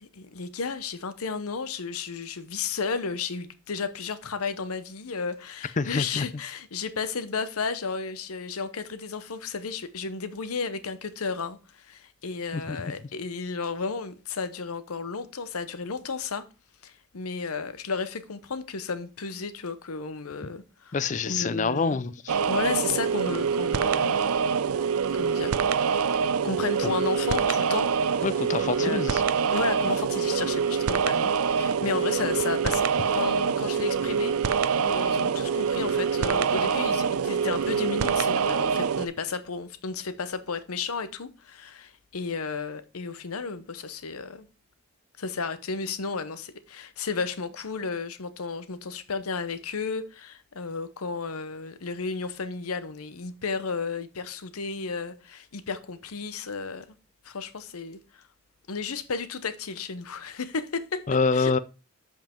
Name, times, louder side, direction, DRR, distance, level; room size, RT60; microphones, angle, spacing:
voice 1, 0.0-16.4 16.8-21.0 21.3-22.0 22.5-24.3 25.1-25.6 26.4-28.2 28.8-29.2 29.5-34.4 34.9-44.5 45.2-56.9 57.2-58.2 58.7-61.0 61.3-61.5, left 4 dB, 85° left, 0.8 m, -33 dB
voice 2, 5.8-6.3 12.5-12.8 20.9-22.4 28.2-29.2 61.1-61.6, left 4 dB, 35° left, 0.4 m, -26 dB
sound 1, 22.3-39.1, right 6 dB, 85° right, 0.5 m, -25 dB
7.4 x 5.6 x 4.4 m
head